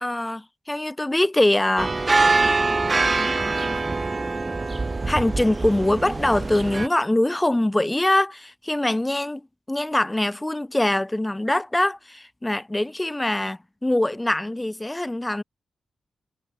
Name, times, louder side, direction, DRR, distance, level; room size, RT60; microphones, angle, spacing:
voice 1, 0.0-2.3 5.1-9.4 9.7-15.4, left 1 dB, 10° left, 2.5 m, -23 dB
sound 1, 1.8-6.9, right 3 dB, 30° right, 1.8 m, -23 dB
wide cardioid pair, 105°, 0 cm